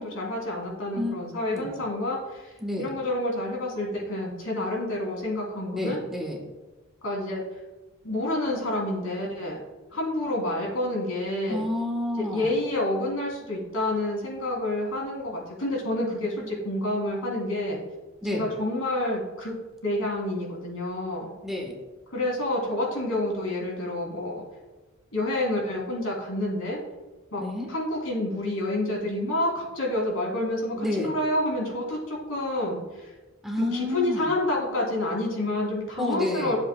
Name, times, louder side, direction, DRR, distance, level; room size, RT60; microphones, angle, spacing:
voice 1, 0.0-2.5 2.8-6.0 7.0-7.4 8.0-9.6 9.9-11.7 12.2-17.8 18.3-19.5 19.8-21.3 22.1-24.4 25.1-26.8 27.3-27.4 27.7-33.1 33.6-36.6, left 1 dB, 80° left, -3 dB, 3.0 m, -28 dB
voice 2, 2.6-2.9 5.7-6.5 11.5-12.5 16.4-16.5 18.2-18.5 21.4-21.7 27.4-27.7 30.7-31.1 33.4-34.3 36.0-36.6, left 1 dB, ahead, -1 dB, 1.2 m, -30 dB
13.5 x 7.4 x 2.3 m, 1.2 s
head